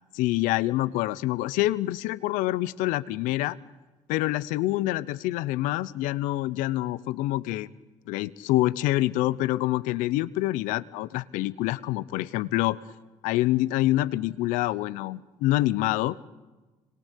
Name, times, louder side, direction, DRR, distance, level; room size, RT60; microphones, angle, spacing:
voice 1, 0.1-3.6 4.1-7.7 8.1-12.8 13.2-16.2, left 16 dB, 90° left, 17 dB, 0.9 m, -26 dB
26.0 x 21.0 x 8.4 m, 1.2 s
supercardioid pair, 70°, 13 cm